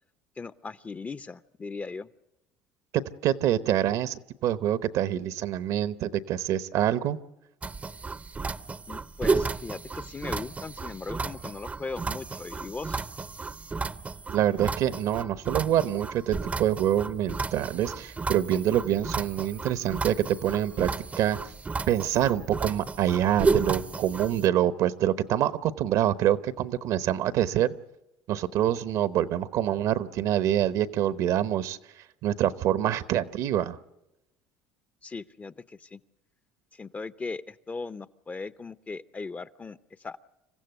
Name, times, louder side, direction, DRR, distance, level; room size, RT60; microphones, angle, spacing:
voice 1, 0.4-2.1 8.9-13.1 35.0-36.0 36.7-40.2, left 4 dB, 25° left, 14 dB, 0.7 m, -38 dB
voice 2, 3.2-7.2 14.3-21.4 21.9-27.7 28.3-31.8 32.2-33.8, right 11 dB, 65° right, 15 dB, 1.0 m, -26 dB
sound 1, 7.6-24.5, right 4 dB, 20° right, 0.7 m, -33 dB
26.5 x 15.0 x 8.0 m, 0.94 s
supercardioid pair, 90°, 6 cm